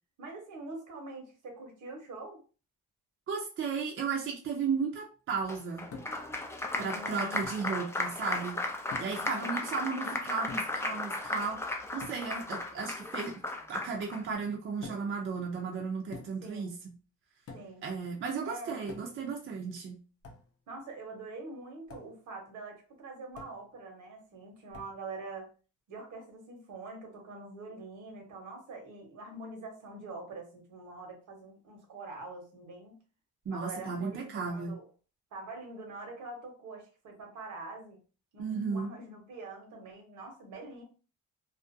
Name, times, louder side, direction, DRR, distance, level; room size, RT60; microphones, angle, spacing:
voice 1, 0.2-2.4 6.7-7.4 9.2-9.7 16.4-16.7 17.5-17.8 18.4-18.8 20.7-25.5 25.9-33.0 33.5-34.8 35.3-38.0 38.3-40.8, right 3 dB, 75° right, 2 dB, 1.0 m, -44 dB
voice 2, 3.3-5.9 6.8-8.6 9.0-11.6 11.9-13.3 13.7-16.7 17.8-20.0 33.5-34.8 38.4-38.9, right 5 dB, 45° right, 0 dB, 0.6 m, -35 dB
Applause, 5.5-14.2, left 2 dB, 10° left, 0.4 m, -35 dB
sound 1, 5.9-6.3 7.4-7.7 8.9-9.3 10.5-10.9 12.0-12.3 14.8-15.2 16.1-16.5 17.5-17.8 18.9-19.3 20.2-20.5 21.9-22.1 23.3-23.7 24.7-25.0, left 4 dB, 50° left, 0.6 m, -47 dB
2.4 x 2.1 x 2.5 m, 0.36 s
cardioid pair, 90°, 30 cm